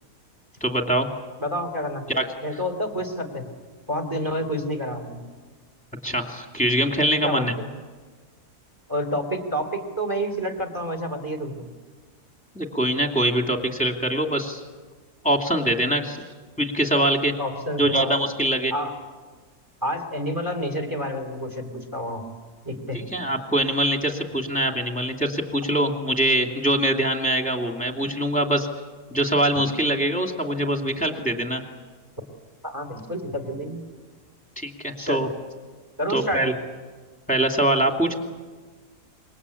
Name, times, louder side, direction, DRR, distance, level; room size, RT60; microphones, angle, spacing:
voice 1, 0.6-1.1 2.1-2.2 6.0-7.5 12.5-14.6 15.2-16.2 16.6-17.3 17.8-18.7 22.9-28.7 29.1-31.6 34.6-35.3 36.1-36.5 37.3-38.1, right 1 dB, 5° left, 4 dB, 2.5 m, -23 dB
voice 2, 1.4-2.1 2.4-3.5 3.9-5.2 7.2-7.7 8.9-11.7 17.4-18.1 18.7-18.9 19.8-22.2 22.6-23.1 32.6-33.8 35.0-35.2 36.0-36.5, equal, 10° right, 5 dB, 3.1 m, -29 dB
27.0 x 22.5 x 8.5 m, 1.4 s
omnidirectional pair, 1.7 m